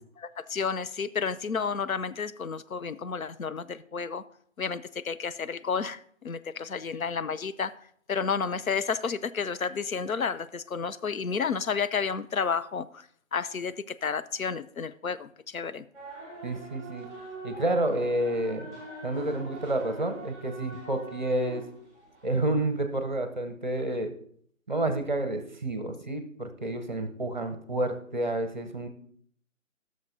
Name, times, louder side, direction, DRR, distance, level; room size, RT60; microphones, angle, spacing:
voice 1, 0.2-4.2 4.6-7.7 8.1-13.0 13.3-15.8, left 6 dB, 90° left, 13 dB, 0.6 m, -31 dB
sound 1, 15.9-22.6, right 3 dB, 10° left, 2.1 m, -44 dB
voice 2, 16.4-17.1 17.4-18.7 19.0-21.6 22.2-24.1 24.7-28.9, right 1 dB, 35° right, 8 dB, 0.8 m, -29 dB
14.5 x 6.5 x 2.6 m, 0.63 s
figure-of-eight pair, 155°, 40 cm